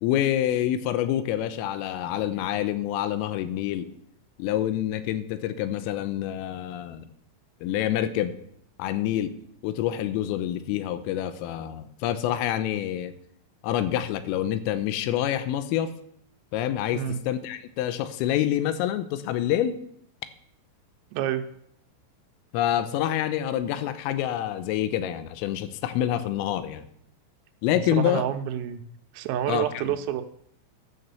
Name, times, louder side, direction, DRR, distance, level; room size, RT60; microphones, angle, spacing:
voice 1, 0.0-3.9 4.4-7.1 7.6-8.3 8.8-9.3 9.6-13.1 13.6-16.0 16.5-19.8 22.5-26.9 27.6-28.2 29.5-29.9, left 11 dB, 85° left, 13 dB, 3.3 m, -27 dB
voice 2, 21.1-21.5 27.9-28.8 29.1-30.2, right 10 dB, 85° right, 8 dB, 3.4 m, -28 dB
11.0 x 6.8 x 6.8 m, 0.70 s
omnidirectional pair, 5.9 m